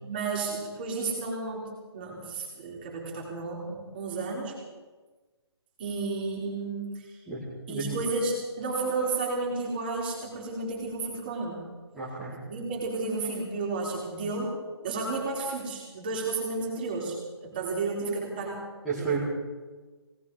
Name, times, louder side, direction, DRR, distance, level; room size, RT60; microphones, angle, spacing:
voice 1, 0.0-1.7 1.9-4.6 5.8-7.1 7.7-11.6 12.5-14.5 14.8-17.2 17.4-18.6 19.0-19.2, right 3 dB, 20° right, -2 dB, 3.5 m, -32 dB
voice 2, 7.3-8.0 11.9-12.4 18.8-19.2, right 5 dB, ahead, -13 dB, 1.9 m, -32 dB
20.5 x 18.0 x 3.8 m, 1.3 s
hypercardioid pair, 180°, 14 cm